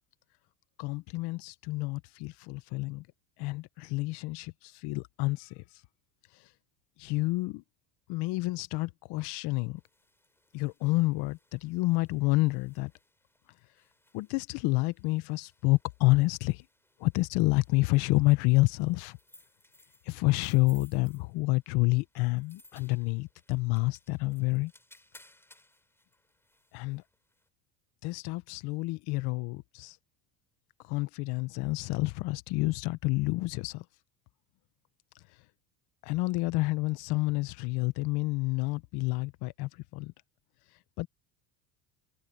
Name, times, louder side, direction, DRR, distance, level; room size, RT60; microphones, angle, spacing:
voice 1, 0.8-3.1 3.4-5.6 7.0-7.6 8.1-9.8 10.5-12.9 14.1-16.6 17.0-19.2 20.1-24.7 26.7-27.0 28.0-30.0 30.8-33.8 36.0-40.1 41.0-41.1, left 22 dB, 65° left, 1.0 m, -29 dB
sound 1, 9.8-27.5, left 1 dB, 5° left, 4.8 m, -63 dB
cardioid pair, 125°, 42 cm